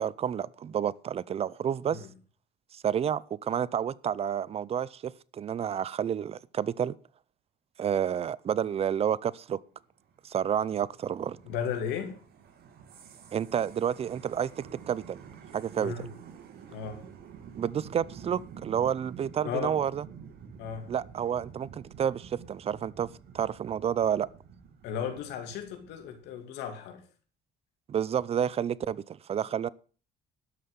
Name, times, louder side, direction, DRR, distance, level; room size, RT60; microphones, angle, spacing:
voice 1, 0.0-2.0 2.7-7.0 7.8-9.6 10.2-11.4 13.3-15.2 15.5-15.9 17.6-20.0 20.9-23.1 23.3-24.3 27.9-29.7, right 9 dB, 35° right, 0.5 m, -30 dB
sound 1, 9.8-26.3, right 7 dB, 70° right, 2.4 m, -49 dB
voice 2, 11.4-12.2 15.8-16.1 16.7-17.0 19.4-19.7 20.6-20.9 24.8-27.0, left 7 dB, 90° left, 2.5 m, -35 dB
12.5 x 5.7 x 8.0 m
cardioid pair, 110°, 17 cm